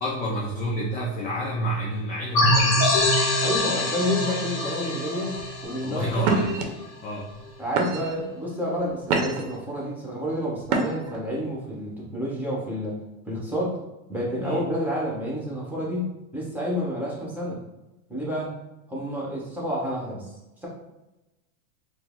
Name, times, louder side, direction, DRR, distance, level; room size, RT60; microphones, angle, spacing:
voice 1, 0.0-3.1 5.8-6.5 7.0-7.3 14.4-14.6, right 1 dB, 20° left, -3 dB, 0.4 m, -29 dB
sound 1, 2.3-6.8, left 1 dB, 35° left, 1.3 m, -24 dB
voice 2, 3.4-6.4 7.6-13.0 13.3-13.8 14.1-17.6 18.1-18.5 18.9-20.3 20.6-20.7, equal, 5° right, -5 dB, 1.0 m, -29 dB
sound 2, 5.3-5.6 6.2-6.6 7.3-7.4 7.8-8.2 8.8-9.6 10.6-11.2, right 4 dB, 55° right, 0.8 m, -26 dB
4.5 x 2.1 x 3.6 m, 0.98 s
supercardioid pair, 135°, 42 cm